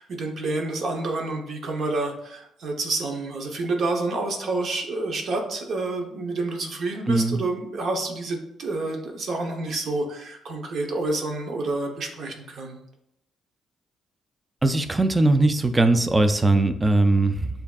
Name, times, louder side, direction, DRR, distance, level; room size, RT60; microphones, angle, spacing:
voice 1, 0.0-12.8, right 2 dB, 60° right, 2 dB, 0.8 m, -29 dB
voice 2, 7.1-7.4 14.6-17.5, right 2 dB, 20° right, 9 dB, 0.4 m, -20 dB
6.9 x 2.6 x 2.3 m, 0.77 s
cardioid pair, 90°, 0 cm